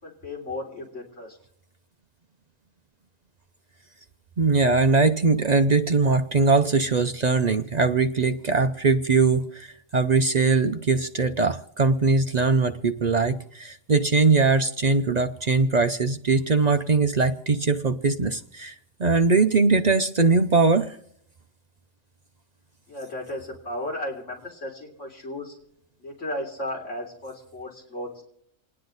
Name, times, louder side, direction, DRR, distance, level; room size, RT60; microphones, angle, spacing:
voice 1, 0.0-1.4 22.9-25.5 26.0-28.2, left 1 dB, 60° left, -1 dB, 3.8 m, -35 dB
voice 2, 4.4-18.7 19.0-21.0, right 4 dB, 45° right, 8 dB, 0.5 m, -21 dB
28.5 x 9.9 x 3.9 m, 0.71 s
omnidirectional pair, 1.4 m